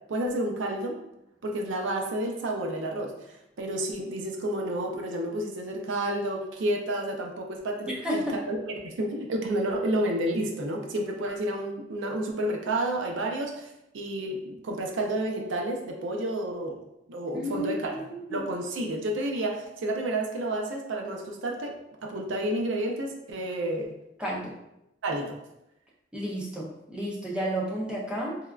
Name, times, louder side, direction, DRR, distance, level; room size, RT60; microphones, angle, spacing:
voice 1, 0.1-1.0 1.4-13.7 13.9-16.8 17.1-18.0 18.3-24.0 25.0-25.3, right 1 dB, 75° right, 1 dB, 0.5 m, -30 dB
voice 2, 7.9-8.4 17.3-18.4 24.2-24.5 26.1-28.4, equal, 5° right, -5 dB, 0.4 m, -32 dB
3.4 x 2.2 x 2.2 m, 0.86 s
head